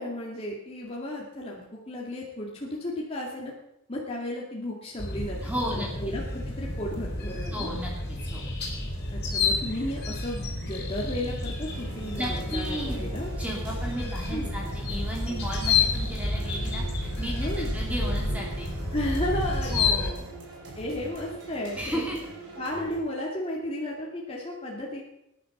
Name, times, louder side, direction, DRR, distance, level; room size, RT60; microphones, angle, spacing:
voice 1, 0.0-3.5 3.9-5.4 5.7-7.7 9.1-13.3 14.3-14.5 17.4-17.7 18.9-20.1 20.8-22.0 22.5-25.0, left 1 dB, 25° left, -3 dB, 2.2 m, -34 dB
sound 1, 5.0-20.1, left 3 dB, 50° left, 4.2 m, -30 dB
voice 2, 5.4-6.1 7.5-8.4 12.2-13.0 13.3-18.7 19.7-20.2 21.7-22.2, equal, 5° right, -3 dB, 2.7 m, -34 dB
sound 2, 11.7-23.0, right 3 dB, 55° right, 4.6 m, -43 dB
20.0 x 10.5 x 5.9 m, 0.86 s
head